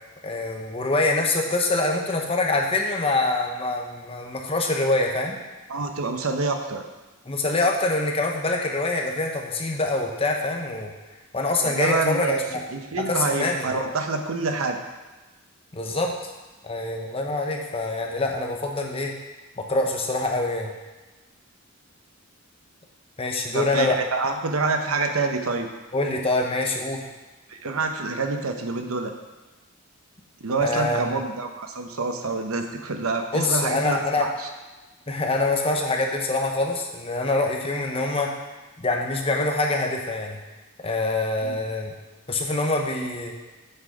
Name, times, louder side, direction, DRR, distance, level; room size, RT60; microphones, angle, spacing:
voice 1, 0.2-5.4 7.3-10.9 11.3-12.7 13.1-13.7 15.7-16.1 16.6-19.1 19.6-20.7 23.2-24.0 25.9-27.0 30.6-31.1 33.3-34.3 35.1-38.3 38.8-40.4 40.8-41.9 42.3-43.3, left 2 dB, 25° left, 1 dB, 1.0 m, -25 dB
voice 2, 5.7-6.8 11.6-12.4 12.7-14.8 23.5-25.7 27.5-29.1 30.4-34.5 41.4-41.6, right 3 dB, 85° right, 5 dB, 0.9 m, -27 dB
8.0 x 6.1 x 5.0 m, 1.2 s
head